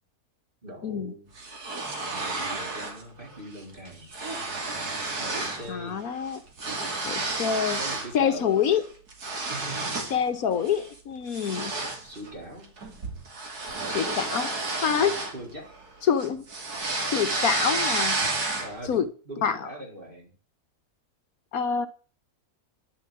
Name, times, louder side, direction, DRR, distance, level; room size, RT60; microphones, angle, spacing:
voice 1, 0.6-1.3 2.1-4.1 5.2-6.4 7.8-8.8 9.5-10.0 11.5-12.9 15.0-15.7 18.6-20.3, right 1 dB, 35° right, 4.6 m, -42 dB
sound 1, 1.4-3.0 3.3-3.6 3.9-5.7 6.0-8.1 8.6-10.2 10.6-10.9 11.3-15.9 16.2-18.9, right 3 dB, 85° right, 3.1 m, -31 dB
voice 2, 5.7-6.4 7.0-7.8 8.1-8.8 10.1-11.7 13.9-14.5 14.8-15.2 16.1-16.4 17.1-18.2 18.9-19.0 19.4-19.6 21.5-21.9, left 7 dB, 70° left, 1.4 m, -26 dB
11.0 x 7.1 x 9.0 m
omnidirectional pair, 1.6 m